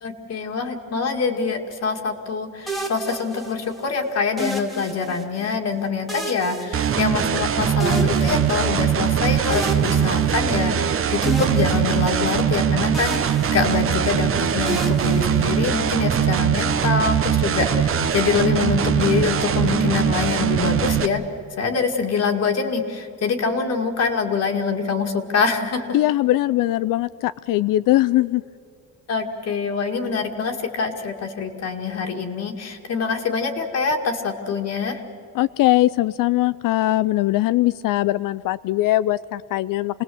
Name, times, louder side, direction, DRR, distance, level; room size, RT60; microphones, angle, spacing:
voice 1, 0.0-21.2 21.6-26.0 29.1-35.0, left 5 dB, 50° left, 3 dB, 2.2 m, -25 dB
sound 1, 2.7-3.8 4.4-5.5 6.1-7.5 7.8-9.0 9.5-10.9 11.2-12.6 12.9-14.1 14.7-16.0, right 2 dB, ahead, 1.8 m, -32 dB
sound 2, 6.7-21.1, right 8 dB, 40° right, 1.0 m, -21 dB
voice 2, 25.9-28.4 35.3-40.0, left 15 dB, 70° left, 16 dB, 0.5 m, -20 dB
27.5 x 19.5 x 7.8 m, 2.6 s
cardioid pair, 175°, 33 cm